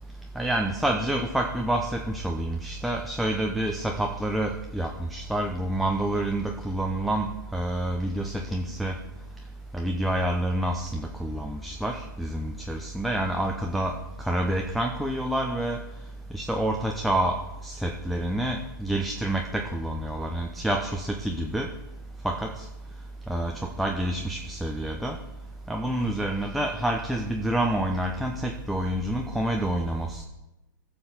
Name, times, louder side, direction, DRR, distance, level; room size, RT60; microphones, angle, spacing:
voice 1, 0.4-9.0 9.7-15.8 16.3-17.4 17.6-21.7 22.2-22.6 23.3-23.5 23.8-25.2 25.7-30.2, right 1 dB, ahead, 1 dB, 0.8 m, -28 dB
14.5 x 7.0 x 4.0 m, 0.99 s
hypercardioid pair, 120°, 11 cm